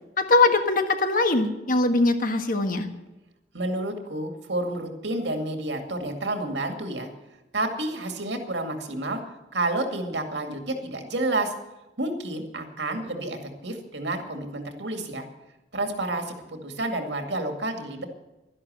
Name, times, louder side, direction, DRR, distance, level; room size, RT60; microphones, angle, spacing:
voice 1, 0.2-2.9, left 3 dB, 50° left, 7 dB, 1.5 m, -21 dB
voice 2, 3.5-7.1 7.5-9.2 9.5-11.5 12.0-15.2 15.7-18.1, right 2 dB, 85° right, 5 dB, 2.2 m, -30 dB
12.0 x 11.0 x 7.7 m, 1.0 s
head